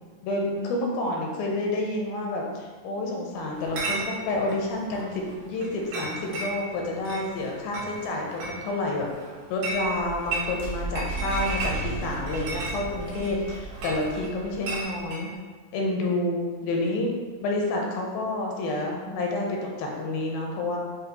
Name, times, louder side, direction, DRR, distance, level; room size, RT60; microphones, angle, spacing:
voice 1, 0.2-9.1 9.5-15.3 15.7-17.1 17.4-20.8, left 2 dB, 85° left, -1 dB, 2.4 m, -29 dB
Chatter / Chink clink, 3.6-15.3, right 2 dB, 70° right, 1.7 m, -36 dB
sound 1, 9.7-14.8, right 2 dB, 85° right, 2.5 m, -35 dB
6.4 x 2.3 x 2.7 m, 1.5 s
omnidirectional pair, 4.3 m